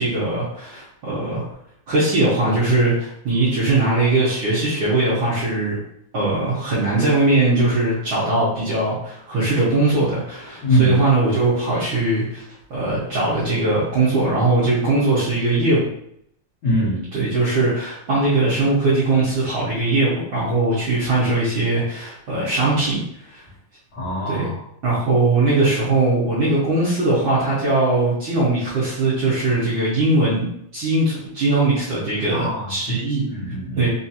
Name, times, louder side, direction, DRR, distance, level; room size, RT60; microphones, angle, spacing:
voice 1, 0.0-1.4 1.9-5.8 6.1-12.4 12.7-15.9 17.1-23.4 24.3-24.5 24.8-30.5 30.7-33.2 33.8-33.9, right 2 dB, 65° right, -9 dB, 1.2 m, -20 dB
voice 2, 10.6-11.0 16.6-17.0 23.9-24.6 32.3-33.0 33.3-33.9, equal, 60° left, -11 dB, 1.1 m, -22 dB
4.5 x 2.4 x 2.7 m, 0.73 s
omnidirectional pair, 3.4 m